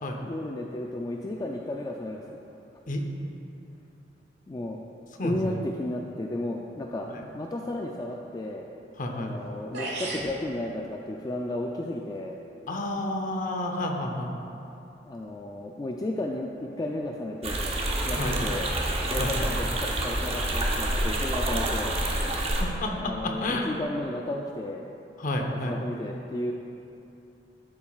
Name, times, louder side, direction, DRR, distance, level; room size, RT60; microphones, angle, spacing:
voice 1, 0.2-2.4 4.5-4.8 5.2-7.1 7.3-8.7 9.1-12.3 15.0-18.7 19.0-22.0 22.9-24.8 25.3-26.5, left 1 dB, 20° left, 0 dB, 0.3 m, -33 dB
voice 2, 5.2-5.5 7.1-7.2 9.0-9.3 12.7-14.3 18.2-18.4 19.2-19.5 22.2-23.7 25.2-25.7, left 1 dB, 50° left, 3 dB, 0.8 m, -31 dB
sound 1, 9.4-9.5 9.7-10.3, right 2 dB, 75° right, 1.3 m, -33 dB
sound 2, 17.4-22.6, right 1 dB, 35° right, 0.8 m, -28 dB
11.5 x 7.1 x 2.4 m, 2.8 s
head